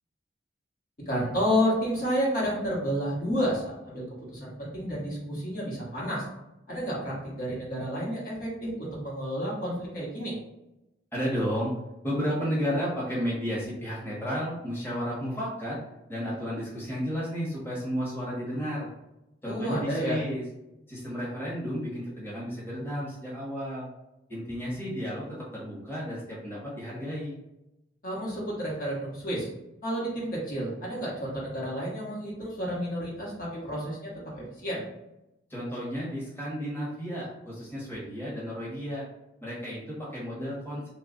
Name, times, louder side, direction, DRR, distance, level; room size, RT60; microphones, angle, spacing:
voice 1, 1.1-4.0 4.3-6.3 6.7-10.4 19.4-20.2 28.0-29.5 29.8-34.8, equal, 45° left, -5 dB, 1.1 m, -30 dB
voice 2, 11.1-11.7 12.0-15.8 16.1-18.9 19.4-20.4 20.9-23.9 24.3-27.4 35.5-39.0 39.4-40.9, equal, 10° left, -7 dB, 1.0 m, -32 dB
3.0 x 2.3 x 3.7 m, 0.92 s
head